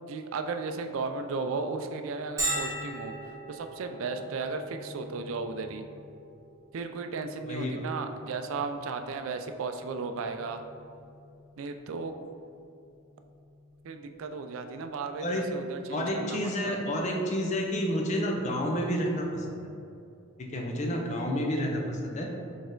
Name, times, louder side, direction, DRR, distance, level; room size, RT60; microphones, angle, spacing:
voice 1, 0.1-3.1 3.5-5.8 6.7-10.6 11.6-12.1 13.8-16.8, right 4 dB, 75° right, 7 dB, 0.3 m, -35 dB
Bell, 2.4-17.8, right 1 dB, 15° right, 0.9 m, -42 dB
voice 2, 7.4-7.9 15.2-15.4 15.9-19.7 20.5-22.3, equal, 35° left, 0 dB, 0.5 m, -30 dB
4.2 x 3.4 x 3.7 m, 2.6 s
head